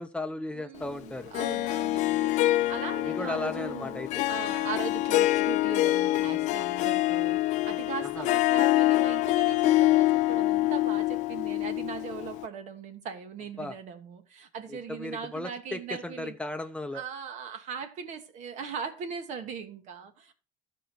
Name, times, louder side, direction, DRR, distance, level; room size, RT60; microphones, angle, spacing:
voice 1, 0.0-1.3 3.0-4.1 8.1-8.3 13.6-13.7 14.7-17.0, left 2 dB, 10° left, 0.7 m, -36 dB
voice 2, 0.5-4.0 4.3-16.3 16.9-20.3, right 7 dB, 60° right, 1.5 m, -39 dB
Harp, 1.3-12.5, left 17 dB, 65° left, 0.4 m, -26 dB
13.0 x 5.2 x 4.5 m
cardioid pair, 120°, 13 cm